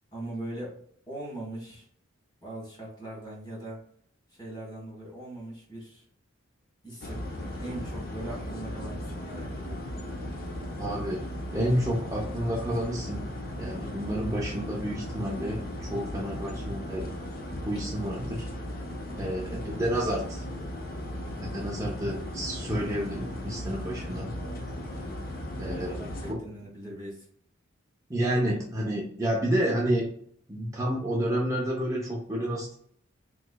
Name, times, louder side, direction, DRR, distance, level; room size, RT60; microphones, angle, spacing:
voice 1, 0.1-0.8 1.1-1.8 2.4-3.8 4.3-6.0 6.8-7.3 7.6-9.8 19.5-19.8 22.0-22.2 25.7-27.2, right 1 dB, 20° left, -3 dB, 1.5 m, -40 dB
sound 1, 7.0-26.3, left 1 dB, 50° left, 0.6 m, -37 dB
voice 2, 10.8-11.2 11.5-13.3 13.6-17.1 17.7-18.5 19.2-20.4 21.4-24.3 25.6-26.0 28.1-30.1 30.5-32.7, equal, 15° right, -3 dB, 0.6 m, -30 dB
3.7 x 3.0 x 2.2 m, 0.62 s
head